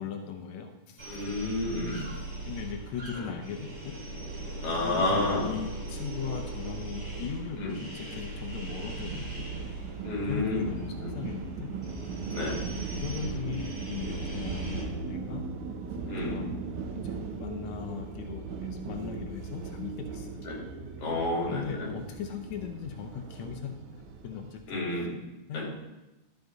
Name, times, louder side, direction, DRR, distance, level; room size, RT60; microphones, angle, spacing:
voice 1, 0.0-1.1 2.5-4.0 4.8-9.5 10.3-11.7 13.0-15.5 16.2-16.7 17.0-20.4 21.5-23.8 24.2-24.9 25.5-25.6, left 7 dB, 85° left, 4 dB, 1.6 m, -38 dB
voice 2, 1.0-2.0 3.2-3.3 4.6-5.5 7.6-7.8 10.0-11.1 12.3-12.6 16.1-16.4 20.4-20.6 21.0-21.9 24.7-25.1 25.5-25.6, left 2 dB, 45° left, -3 dB, 3.2 m, -30 dB
sound 1, 1.0-14.8, right 2 dB, 40° right, 4.5 m, -40 dB
sound 2, 7.2-24.6, right 4 dB, 70° right, 2.0 m, -39 dB
12.5 x 6.6 x 3.9 m, 1.0 s
omnidirectional pair, 4.3 m